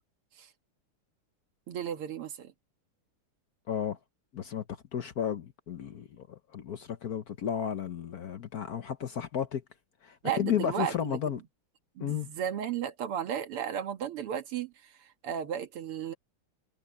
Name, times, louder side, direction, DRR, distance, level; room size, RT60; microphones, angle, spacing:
voice 1, 1.7-2.5 10.2-11.2 12.0-16.1, right 9 dB, 90° right, 2.4 m, -34 dB
voice 2, 3.7-4.0 4.3-9.6 10.0-11.4 12.0-12.3, left 9 dB, 55° left, 1.1 m, -33 dB
omnidirectional pair, 2.4 m